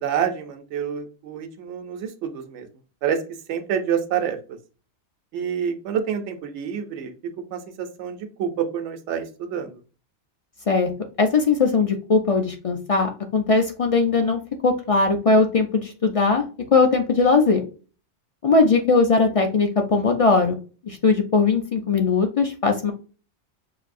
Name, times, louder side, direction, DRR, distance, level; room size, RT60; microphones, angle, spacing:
voice 1, 0.0-2.7 3.0-3.2 3.5-4.4 5.3-7.1 7.5-9.8, right 8 dB, 80° right, 6 dB, 1.0 m, -27 dB
voice 2, 11.2-16.4 16.7-17.6 18.4-20.6 20.8-22.9, left 4 dB, 50° left, 5 dB, 0.4 m, -19 dB
5.9 x 2.6 x 2.5 m, 0.36 s
omnidirectional pair, 1.2 m